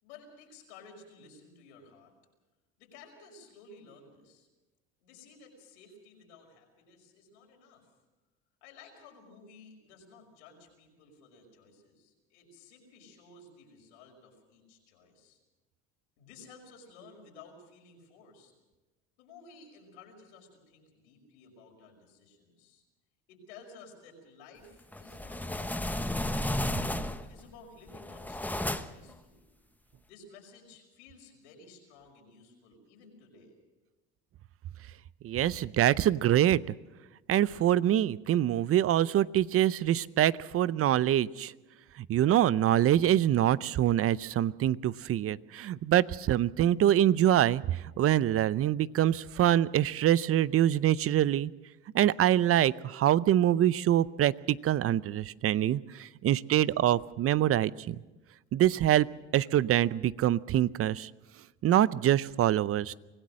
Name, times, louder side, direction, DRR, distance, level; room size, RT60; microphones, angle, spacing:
voice 1, 0.0-2.1 2.8-4.5 5.0-7.9 8.6-15.4 16.2-18.5 19.2-22.8 23.3-26.7 27.2-29.4 30.1-33.6, left 4 dB, 90° left, 1 dB, 5.6 m, -54 dB
sound 1, 24.9-27.4 27.9-29.1, left 1 dB, 5° left, 1.0 m, -33 dB
voice 2, 35.2-36.6 37.3-41.5 42.0-51.5 51.9-58.0 58.5-59.1 59.3-61.1 61.6-62.9, right 12 dB, 45° right, 19 dB, 0.6 m, -25 dB
25.0 x 16.5 x 6.4 m, 1.1 s
supercardioid pair, 85°, 33 cm